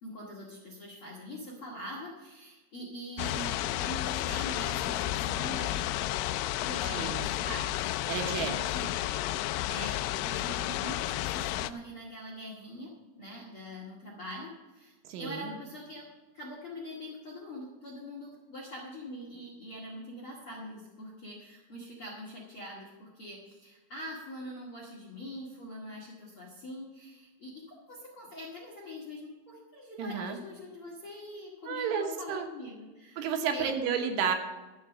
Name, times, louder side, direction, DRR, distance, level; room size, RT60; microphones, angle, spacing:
voice 1, 0.0-6.0 6.6-8.9 9.7-12.9 13.1-16.1 16.3-33.7, equal, 50° left, -3 dB, 1.7 m, -43 dB
sound 1, 3.2-11.7, left 15 dB, 85° left, 2.8 m, -32 dB
voice 2, 6.9-7.2 8.1-8.6 15.1-15.5 30.0-30.4 31.7-32.5 33.2-34.4, right 7 dB, 75° right, 5 dB, 3.5 m, -31 dB
12.5 x 7.3 x 7.2 m, 1.2 s
omnidirectional pair, 5.8 m